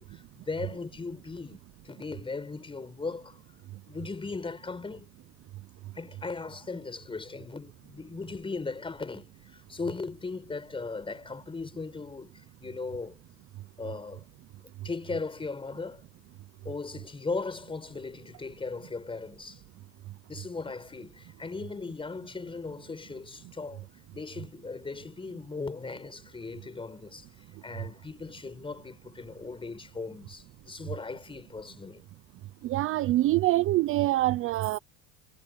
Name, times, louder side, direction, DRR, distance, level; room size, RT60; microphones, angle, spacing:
voice 1, 0.0-3.4 3.9-5.1 5.9-13.2 13.8-14.3 14.8-16.0 16.6-19.6 20.3-23.9 24.1-32.0, left 4 dB, 10° left, 5.5 m, -38 dB
voice 2, 32.6-34.8, right 16 dB, 30° right, 0.6 m, -25 dB
supercardioid pair, 140°, 41 cm